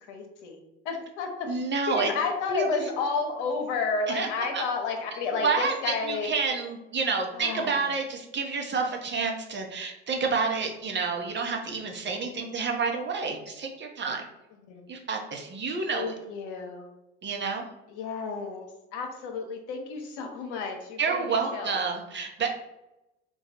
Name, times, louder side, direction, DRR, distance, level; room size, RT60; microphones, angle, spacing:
voice 1, 0.0-1.5 1.9-6.3 7.3-7.8 14.7-14.9 15.9-16.9 17.9-21.8, left 4 dB, 70° left, 3 dB, 0.8 m, -32 dB
voice 2, 1.5-2.1 2.5-2.7 4.1-4.3 4.5-4.6 5.4-14.2 14.9-16.1 17.2-17.6 21.0-22.5, right 4 dB, 30° right, 2 dB, 0.8 m, -29 dB
3.8 x 2.3 x 4.2 m, 0.93 s
hypercardioid pair, 65°, 36 cm